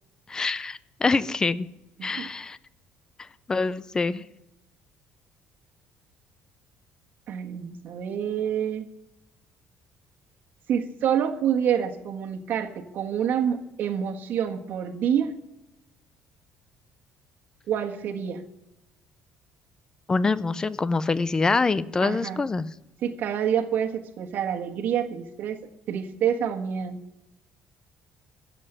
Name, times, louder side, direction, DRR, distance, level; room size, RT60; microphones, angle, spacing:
voice 1, 0.3-1.7 2.0-2.6 3.5-4.2 20.1-22.7, left 4 dB, 15° left, 17 dB, 0.5 m, -25 dB
voice 2, 7.3-8.9 10.7-15.3 17.7-18.4 22.0-22.4 23.0-25.6 25.9-27.0, right 8 dB, 50° right, 4 dB, 1.5 m, -27 dB
15.5 x 7.6 x 9.9 m, 0.90 s
cardioid pair, 165°, 4 cm